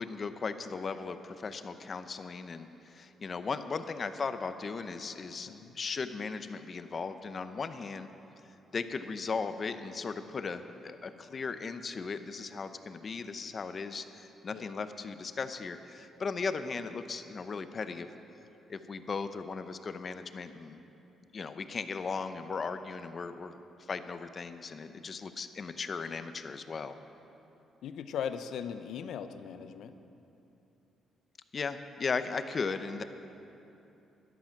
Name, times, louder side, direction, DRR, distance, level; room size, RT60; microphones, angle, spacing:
voice 1, 0.0-8.1 8.7-18.1 18.7-20.8 21.3-23.6 23.9-27.0 31.5-33.0, left 4 dB, 40° left, 10 dB, 0.8 m, -37 dB
voice 2, 27.8-29.9, left 8 dB, 75° left, 10 dB, 0.7 m, -38 dB
13.5 x 11.5 x 5.9 m, 2.9 s
cardioid pair, 90°, 0 cm